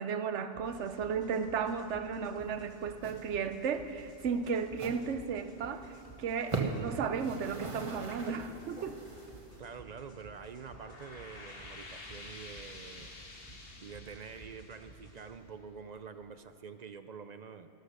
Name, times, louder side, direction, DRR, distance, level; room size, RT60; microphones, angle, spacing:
voice 1, 0.0-9.0, right 6 dB, 90° right, 9 dB, 1.1 m, -34 dB
sound 1, 0.5-15.3, equal, 75° left, 3.0 m, -55 dB
sound 2, 2.4-2.6 2.9-3.2 3.5-3.6 4.1-4.2 4.7-5.0 5.5-5.6 5.8-6.0 6.4-6.8 7.1-9.6, right 3 dB, 30° right, 1.2 m, -39 dB
voice 2, 9.6-13.1 13.4-17.7, right 6 dB, 55° right, 10 dB, 0.5 m, -47 dB
sound 3, 10.5-15.8, left 2 dB, 55° left, 1.6 m, -50 dB
13.5 x 13.0 x 6.5 m, 3.0 s
omnidirectional pair, 1.2 m